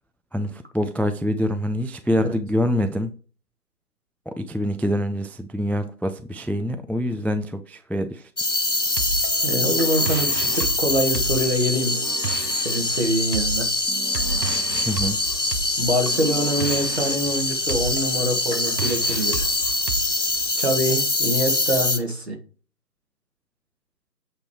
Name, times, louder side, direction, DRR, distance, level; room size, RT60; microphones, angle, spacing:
voice 1, 0.3-3.1 4.3-8.2 14.9-15.2, equal, 5° left, 0.3 m, -25 dB
sound 1, 8.4-22.0, left 2 dB, 50° left, 0.7 m, -24 dB
sound 2, 9.0-20.7, right 4 dB, 80° right, 0.8 m, -32 dB
voice 2, 9.4-12.0 12.6-13.7 15.8-19.5 20.6-22.4, equal, 40° right, 1.4 m, -25 dB
8.2 x 3.3 x 4.7 m
figure-of-eight pair, 170°, 49 cm